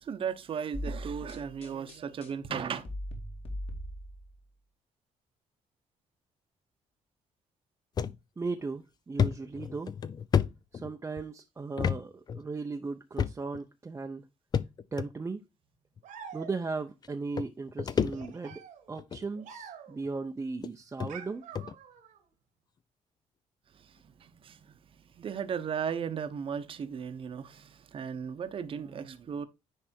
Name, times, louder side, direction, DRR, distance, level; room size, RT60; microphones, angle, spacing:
voice 1, 0.0-2.9 23.8-29.4, right 7 dB, 45° right, 0.9 m, -36 dB
sound 1, 0.7-4.4, equal, 50° left, 2.3 m, -40 dB
sound 2, 8.0-8.2 8.6-8.7 9.2-11.2 11.8-12.0 12.3-12.4 13.2-13.6 14.5-15.1 16.0-16.1 17.0-17.1 17.4-18.6 19.0-19.3 20.0-20.1 20.6-20.7 21.0-21.1 21.5-21.7, left 7 dB, 30° left, 0.4 m, -30 dB
voice 2, 8.4-9.9 10.7-14.3 14.9-15.4 16.3-18.6 18.9-21.4, right 3 dB, 20° right, 0.6 m, -37 dB
sound 3, 16.0-16.9 18.1-20.1 21.1-22.2, right 8 dB, 80° right, 1.7 m, -47 dB
10.0 x 3.4 x 4.4 m
cardioid pair, 140°, 13 cm